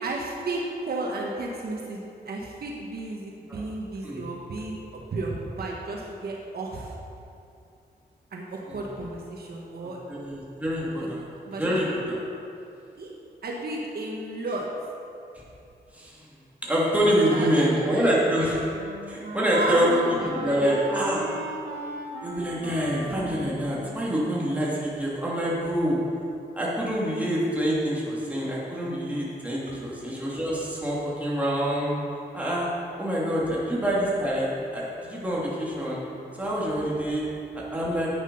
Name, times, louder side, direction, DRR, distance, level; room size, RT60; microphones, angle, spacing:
voice 1, 0.0-7.0 8.3-10.0 10.6-11.1 11.4-11.8 13.0-13.1 13.4-14.6 17.3-18.5 19.5-21.1, right 2 dB, 65° right, -2 dB, 1.4 m, -33 dB
voice 2, 10.1-11.3 11.6-12.2 15.9-16.3 16.6-18.6 19.1-19.9 20.4-21.2 22.2-26.0 26.5-31.9 32.3-32.7 33.0-36.0 36.4-37.2 37.7-38.1, equal, 10° right, -7 dB, 2.9 m, -26 dB
Wind instrument woodwind instrument, 18.2-24.9, right 2 dB, 80° right, 1.8 m, -39 dB
10.5 x 8.8 x 5.5 m, 2.6 s
wide cardioid pair, 120°, 18 cm